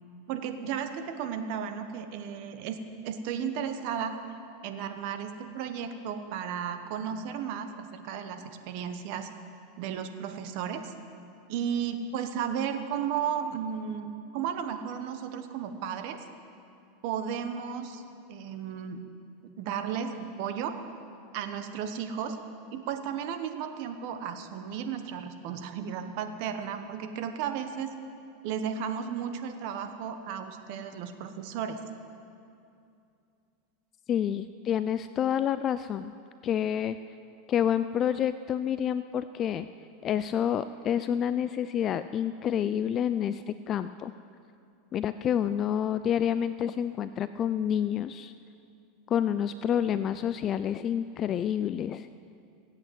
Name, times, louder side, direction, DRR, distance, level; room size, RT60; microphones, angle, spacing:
voice 1, 0.3-2.8 3.0-4.1 4.6-9.3 9.8-10.9 11.5-16.2 17.0-18.0 18.3-19.0 19.6-20.8 21.3-22.4 22.7-27.9 28.4-31.8, right 8 dB, 60° right, 7 dB, 1.3 m, -34 dB
voice 2, 34.1-36.1 36.4-37.0 37.5-39.7 40.0-44.1 44.9-48.3 49.1-52.1, left 9 dB, 35° left, 12 dB, 0.4 m, -28 dB
16.5 x 8.5 x 7.9 m, 2.6 s
supercardioid pair, 115°, 0 cm